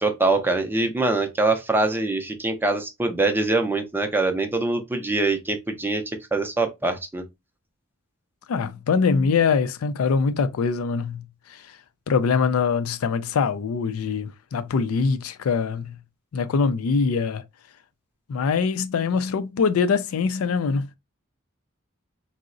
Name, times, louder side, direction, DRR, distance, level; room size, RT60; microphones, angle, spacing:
voice 1, 0.0-6.0 6.3-7.2, right 2 dB, 10° right, 0.4 m, -23 dB
voice 2, 8.5-11.2 12.1-16.0 16.3-17.4 18.3-20.9, left 5 dB, 80° left, 0.4 m, -23 dB
3.6 x 2.0 x 2.5 m
head